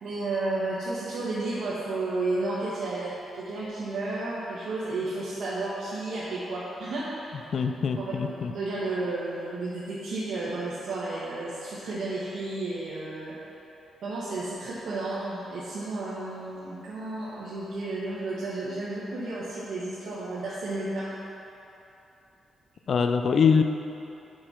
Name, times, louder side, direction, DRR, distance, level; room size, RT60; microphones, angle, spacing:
voice 1, 0.0-7.5 8.0-13.3 14.0-21.1, right 2 dB, 75° right, -8 dB, 1.3 m, -32 dB
voice 2, 7.5-8.5 22.9-23.6, left 6 dB, 50° left, 7 dB, 0.4 m, -23 dB
6.9 x 5.3 x 5.8 m, 2.9 s
cardioid pair, 140°, 0 cm